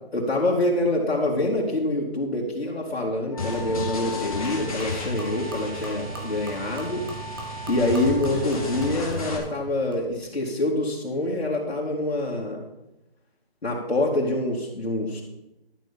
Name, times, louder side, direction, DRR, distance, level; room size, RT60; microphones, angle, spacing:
voice 1, 0.1-7.0 7.7-12.6 13.6-15.2, left 1 dB, 85° left, -6 dB, 3.0 m, -26 dB
Wind instrument woodwind instrument, 3.3-8.8, equal, 15° left, 4.6 m, -40 dB
sound 1, 3.4-9.4, left 3 dB, 35° left, 3.0 m, -33 dB
Gurgling / Liquid, 3.5-10.3, equal, 20° right, 1.4 m, -42 dB
12.5 x 6.7 x 7.3 m, 0.94 s
hypercardioid pair, 180°, 31 cm